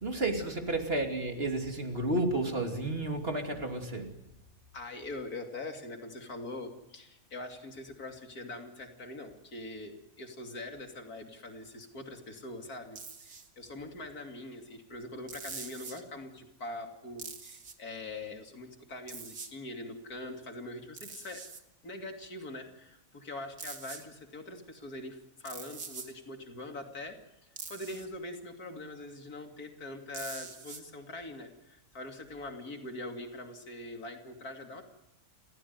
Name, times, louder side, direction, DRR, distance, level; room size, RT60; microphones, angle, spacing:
voice 1, 0.0-4.1, right 2 dB, 40° right, 4 dB, 3.1 m, -31 dB
voice 2, 4.7-21.4 21.8-27.2 27.4-34.8, left 2 dB, 85° left, 4 dB, 3.3 m, -43 dB
sound 1, 13.0-13.5 15.3-16.0 17.2-17.7 19.1-19.5 21.0-21.6 23.6-24.1 25.5-26.1 27.6-28.1 30.1-30.8, right 5 dB, 85° right, 2.4 m, -44 dB
29.5 x 15.5 x 9.6 m, 0.91 s
omnidirectional pair, 1.5 m